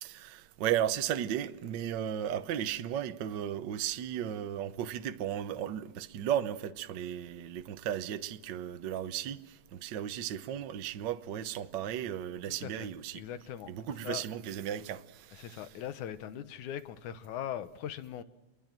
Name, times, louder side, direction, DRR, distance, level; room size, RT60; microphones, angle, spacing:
voice 1, 0.0-13.2 13.7-15.7, right 10 dB, 85° right, 0.9 m, -35 dB
voice 2, 12.5-12.9 13.2-13.7 14.0-14.2 15.4-18.2, left 10 dB, 85° left, 2.5 m, -40 dB
28.0 x 23.0 x 7.5 m
omnidirectional pair, 3.4 m